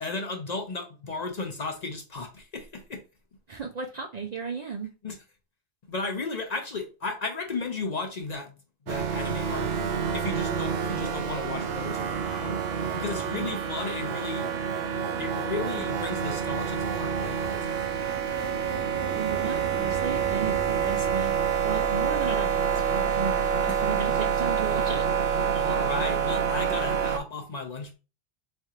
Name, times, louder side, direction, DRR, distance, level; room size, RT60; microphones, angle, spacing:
voice 1, 0.0-3.0 5.0-5.2 5.9-8.6 8.9-9.7 10.1-12.6 12.9-14.5 15.2-17.8 23.7-23.8 25.5-28.0, left 3 dB, 50° left, 0.6 m, -34 dB
voice 2, 3.5-4.9 13.3-13.5 19.1-21.3 21.6-25.1, right 5 dB, 55° right, 0.5 m, -34 dB
sound 1, 8.9-27.2, right 7 dB, 70° right, 0.9 m, -27 dB
3.6 x 3.3 x 2.9 m
omnidirectional pair, 1.1 m